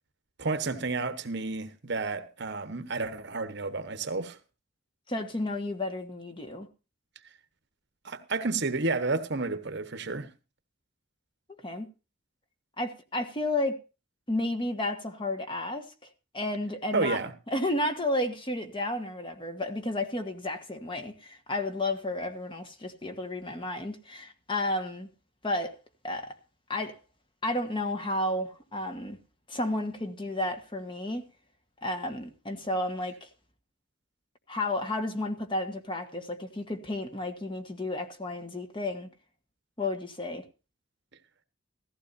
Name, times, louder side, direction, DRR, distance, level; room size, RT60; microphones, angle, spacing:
voice 1, 0.4-4.4 8.0-10.3 16.9-17.3, right 3 dB, 60° right, 1.2 m, -31 dB
voice 2, 5.1-6.7 11.6-11.9 12.8-13.8 14.3-15.9 16.3-17.2 17.5-25.1 25.4-25.7 26.0-26.4 26.7-27.0 27.4-29.2 29.5-31.2 31.8-33.3 34.5-39.1 39.8-40.4, left 1 dB, 25° left, 1.5 m, -32 dB
16.0 x 15.0 x 2.7 m
head